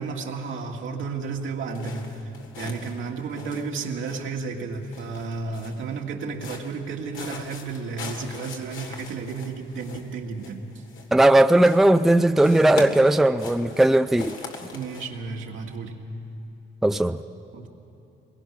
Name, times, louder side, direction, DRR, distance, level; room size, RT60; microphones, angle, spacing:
voice 1, 0.0-2.1 2.6-10.6 14.7-16.0 17.5-17.7, right 4 dB, 75° right, 1 dB, 1.9 m, -32 dB
sound 1, 1.7-4.5 4.8-5.9 6.3-6.8 7.1-11.3 11.6-12.1 12.4-15.1, left 4 dB, 80° left, 2.0 m, -41 dB
voice 2, 11.1-14.3 16.8-17.2, right 1 dB, ahead, 9 dB, 0.5 m, -18 dB
22.0 x 21.0 x 5.9 m, 2.7 s
cardioid pair, 90°, 20 cm